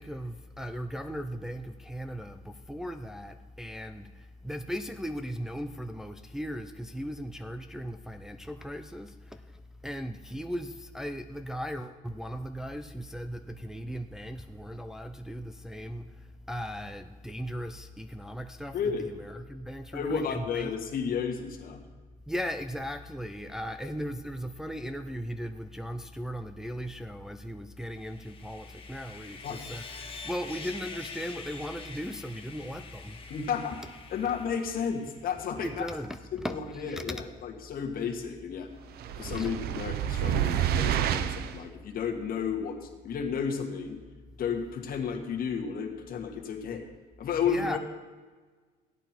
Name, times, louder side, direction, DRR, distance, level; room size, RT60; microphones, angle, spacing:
voice 1, 0.0-20.7 22.3-33.3 35.6-37.2 39.2-39.5 47.4-47.8, equal, 5° right, 0.5 m, -37 dB
voice 2, 18.7-19.1 19.9-21.8 23.8-23.9 29.4-29.6 33.3-33.8 34.1-35.9 36.3-38.7 39.2-42.8 43.0-44.0 44.4-46.8 47.2-47.8, left 6 dB, 60° left, 1.7 m, -32 dB
Sawing, 27.9-35.4, left 4 dB, 30° left, 1.6 m, -45 dB
sound 1, 39.0-41.6, right 10 dB, 70° right, 0.6 m, -28 dB
15.5 x 9.0 x 4.5 m
cardioid pair, 110°, 17 cm